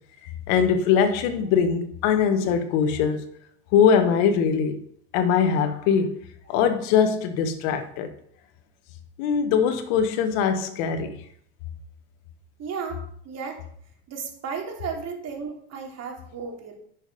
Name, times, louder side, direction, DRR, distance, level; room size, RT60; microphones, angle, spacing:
voice 1, 0.2-3.2 3.7-4.8 5.1-6.2 6.5-8.1 9.2-11.2, left 7 dB, 70° left, 1.5 m, -22 dB
voice 2, 12.6-13.6 14.1-16.8, right 6 dB, 50° right, 3.1 m, -34 dB
10.5 x 6.4 x 5.4 m
supercardioid pair, 90°, 34 cm